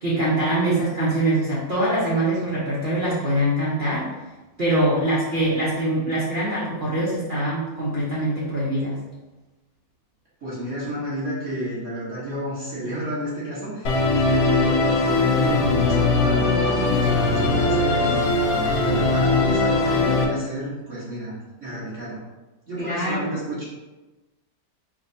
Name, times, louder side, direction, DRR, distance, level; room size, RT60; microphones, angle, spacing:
voice 1, 0.0-4.1 4.6-9.0 22.8-23.3, right 1 dB, 75° right, -8 dB, 0.4 m, -23 dB
voice 2, 10.4-22.2 22.7-23.6, right 1 dB, 45° right, -9 dB, 1.4 m, -30 dB
Musical instrument, 13.9-20.3, left 3 dB, 75° left, 1.2 m, -20 dB
4.8 x 2.1 x 2.7 m, 1.1 s
omnidirectional pair, 2.1 m